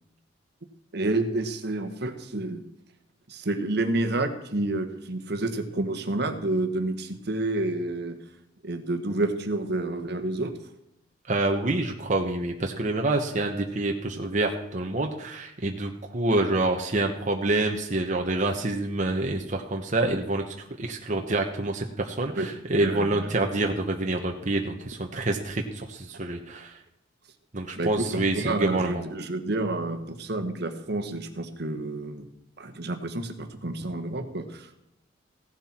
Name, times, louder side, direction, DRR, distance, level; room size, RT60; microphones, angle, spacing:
voice 1, 0.9-2.6 3.3-8.2 8.6-10.5 22.4-22.5 22.8-23.3 27.7-32.3 32.6-34.9, right 2 dB, 60° right, 8 dB, 1.4 m, -29 dB
voice 2, 11.3-26.8 27.5-29.0, right 2 dB, 40° right, 2 dB, 1.1 m, -27 dB
16.0 x 11.5 x 4.4 m, 0.81 s
head